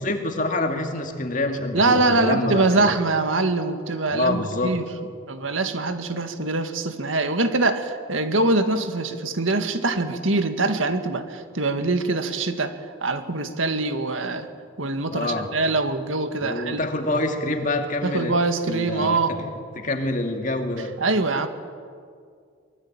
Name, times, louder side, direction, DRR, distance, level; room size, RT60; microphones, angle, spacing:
voice 1, 0.0-2.9 4.1-4.7 15.1-15.5 16.4-18.4 18.7-21.0, left 2 dB, 40° left, 4 dB, 2.4 m, -26 dB
voice 2, 1.7-4.9 5.3-14.5 14.8-16.8 18.0-19.3 21.0-21.5, right 2 dB, 80° right, 8 dB, 1.9 m, -23 dB
24.0 x 22.0 x 8.8 m, 2.2 s
head